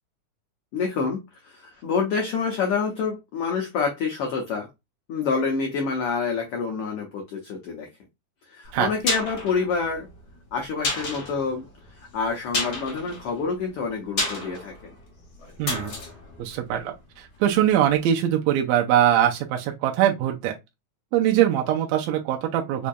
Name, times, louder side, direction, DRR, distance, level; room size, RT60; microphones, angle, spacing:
voice 1, 0.7-4.7 5.1-7.9 8.5-10.1 10.5-11.6 12.0-14.9, left 5 dB, 85° left, 1.2 m, -27 dB
sound 1, 8.7-17.5 17.8-17.9, left 2 dB, 55° left, 1.2 m, -32 dB
voice 2, 15.6-15.9 16.4-20.5 21.1-22.9, right 11 dB, 80° right, 1.7 m, -22 dB
5.0 x 2.6 x 2.2 m
omnidirectional pair, 3.6 m